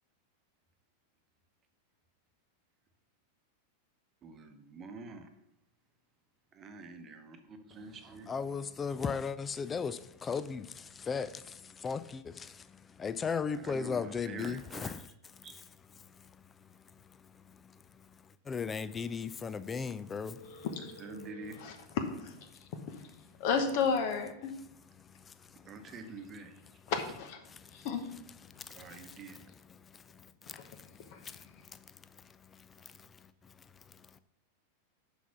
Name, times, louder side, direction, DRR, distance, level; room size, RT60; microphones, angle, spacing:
voice 1, 4.2-5.3 6.5-8.3 13.6-14.9 15.4-15.6 21.0-21.6 25.6-26.5 28.7-29.4, right 3 dB, 25° right, 1.0 m, -47 dB
voice 2, 8.3-15.1 15.5-15.7 16.2-16.3 18.5-20.4 25.3-25.4 27.5-27.8 28.5-31.4 31.7-31.8 32.8-33.1, left 6 dB, 20° left, 0.4 m, -37 dB
voice 3, 20.4-21.7 22.1-22.4 22.9-23.0 23.4-24.5 26.9-27.4 27.8-28.0 30.5-30.6, left 5 dB, 50° left, 1.0 m, -33 dB
6.1 x 5.2 x 5.9 m
figure-of-eight pair, 90°, 0 cm